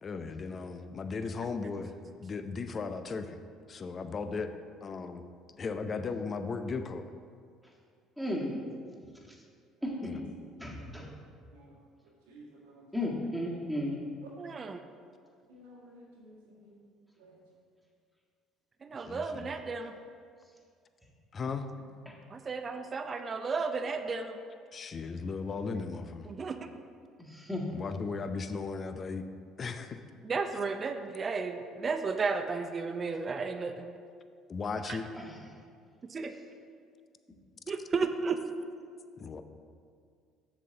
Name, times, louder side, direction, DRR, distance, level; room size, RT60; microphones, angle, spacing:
voice 1, 0.0-1.9 2.2-3.4 3.7-4.5 4.8-5.2 5.5-7.1 10.0-10.2 19.0-19.5 21.3-21.7 24.7-26.3 27.7-29.2 29.6-30.0 34.5-35.0 39.2-39.4, left 4 dB, 40° left, 9 dB, 0.5 m, -36 dB
voice 2, 8.2-8.6 9.8-10.2 10.6-11.1 12.9-14.0 22.0-22.2 27.2-27.7 35.2-35.4, left 1 dB, ahead, -3 dB, 1.7 m, -34 dB
voice 3, 12.3-12.9 14.2-14.3 15.5-16.8 17.2-17.4, right 1 dB, 85° right, -4 dB, 1.7 m, -54 dB
voice 4, 14.4-14.8 18.8-20.0 22.3-24.4 26.3-26.6 30.2-33.9 34.9-35.0 36.1-36.3 37.7-38.4, right 4 dB, 35° right, 8 dB, 0.5 m, -33 dB
7.2 x 6.9 x 3.9 m, 2.2 s
hypercardioid pair, 60°, 0 cm